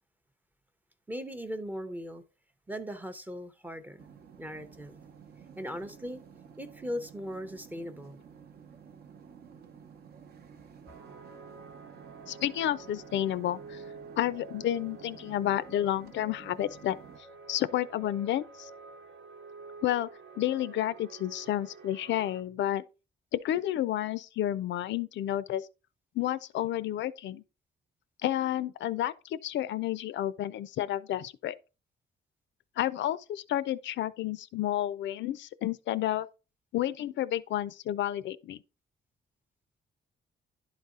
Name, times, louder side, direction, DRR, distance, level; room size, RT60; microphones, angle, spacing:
voice 1, 1.1-2.2 2.7-4.1 4.4-5.0 5.6-6.2 6.6-8.2, equal, 10° right, 0.6 m, -38 dB
sound 1, 4.0-17.2, right 7 dB, 55° right, 0.8 m, -52 dB
sound 2, 10.9-22.4, right 4 dB, 80° right, 1.2 m, -49 dB
voice 2, 12.3-13.8 14.2-17.0 17.5-18.7 19.8-20.1 20.4-22.8 23.3-25.7 26.2-27.4 28.2-31.5 32.8-36.3 36.7-38.6, left 12 dB, 75° left, 0.4 m, -31 dB
11.0 x 4.1 x 3.6 m
wide cardioid pair, 165°, 19 cm